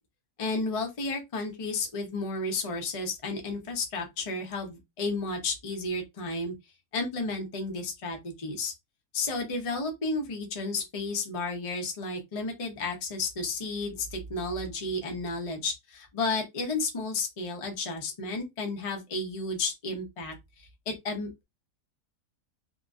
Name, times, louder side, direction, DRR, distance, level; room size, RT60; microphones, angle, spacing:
voice 1, 0.4-6.5 6.9-8.7 9.1-20.3 20.9-21.3, left 3 dB, 40° left, 0.4 m, -32 dB
2.8 x 2.5 x 2.4 m
omnidirectional pair, 1.7 m